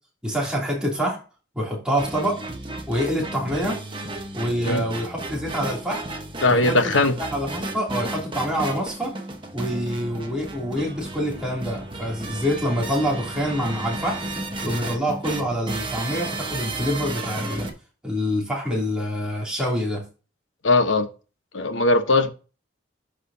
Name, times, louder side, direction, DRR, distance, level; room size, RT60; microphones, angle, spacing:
voice 1, 0.2-1.2 1.5-2.4 2.9-3.8 4.3-6.0 6.5-6.8 7.3-9.1 9.5-14.2 14.6-17.7 18.0-20.0, equal, 5° right, 3.0 m, -26 dB
sound 1, 2.0-17.7, right 2 dB, 25° right, 1.3 m, -33 dB
voice 2, 6.4-7.2 20.6-21.1 21.5-22.3, left 2 dB, 90° left, 1.2 m, -19 dB
11.5 x 5.0 x 2.8 m
head